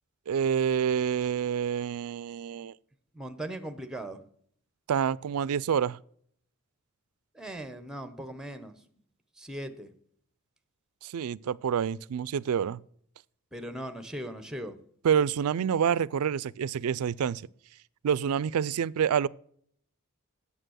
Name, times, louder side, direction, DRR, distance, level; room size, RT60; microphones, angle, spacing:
voice 1, 0.3-2.7 4.9-6.0 11.0-12.8 15.0-17.4 18.0-19.3, right 8 dB, 90° right, 0.4 m, -27 dB
voice 2, 3.1-4.2 7.3-8.7 9.4-9.9 13.5-14.8, right 1 dB, 5° right, 0.9 m, -39 dB
9.0 x 7.2 x 6.3 m
head